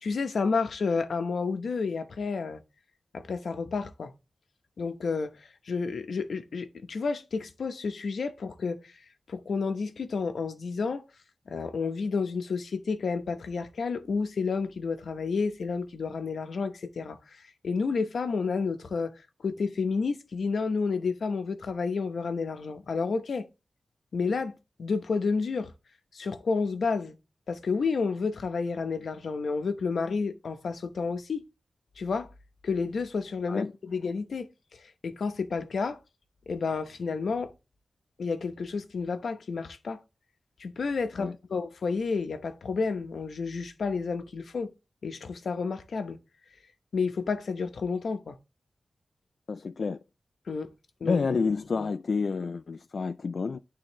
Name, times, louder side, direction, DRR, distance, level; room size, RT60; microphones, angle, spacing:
voice 1, 0.0-2.6 3.1-4.1 4.8-8.8 9.3-11.0 11.5-19.1 19.4-23.5 24.1-24.5 24.8-25.7 26.1-27.2 27.5-31.4 32.0-32.3 32.6-34.5 34.7-36.0 36.5-37.5 38.2-40.0 40.6-44.7 45.0-46.2 46.9-48.4 50.5-50.7 51.0-51.2, left 4 dB, 80° left, 0.9 m, -30 dB
voice 2, 49.5-50.0 51.0-53.6, left 4 dB, 60° left, 0.3 m, -29 dB
10.5 x 3.8 x 3.1 m
wide cardioid pair, 135°, 0 cm